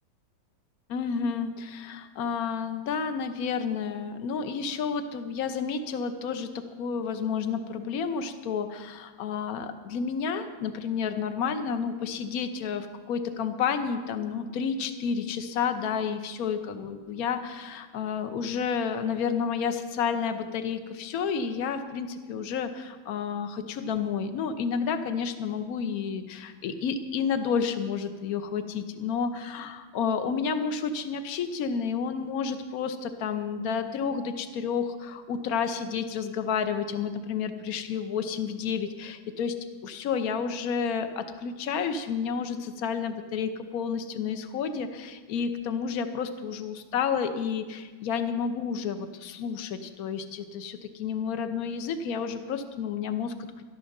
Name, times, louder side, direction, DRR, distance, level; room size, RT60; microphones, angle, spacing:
voice 1, 0.9-39.5 39.8-53.6, left 6 dB, 55° left, 8 dB, 1.3 m, -30 dB
12.5 x 12.5 x 6.6 m, 1.3 s
omnidirectional pair, 2.2 m